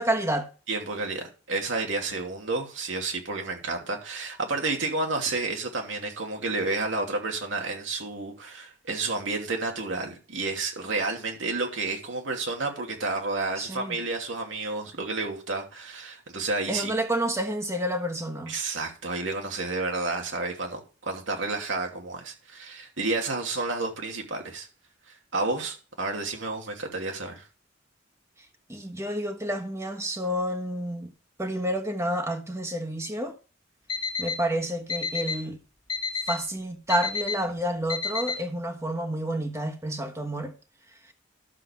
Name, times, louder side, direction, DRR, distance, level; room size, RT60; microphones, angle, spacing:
voice 1, 0.0-0.5 13.6-14.0 16.7-18.5 28.7-31.1 31.4-33.4 34.2-35.6 36.3-40.5, right 1 dB, 15° right, 1.3 m, -29 dB
voice 2, 0.7-16.9 18.5-24.7 25.3-27.5, right 3 dB, 85° right, 2.8 m, -30 dB
Alarm, 33.9-34.3 34.9-35.3 35.9-36.3 36.9-37.3 37.9-38.3, left 5 dB, 25° left, 1.6 m, -28 dB
12.0 x 6.9 x 4.6 m
head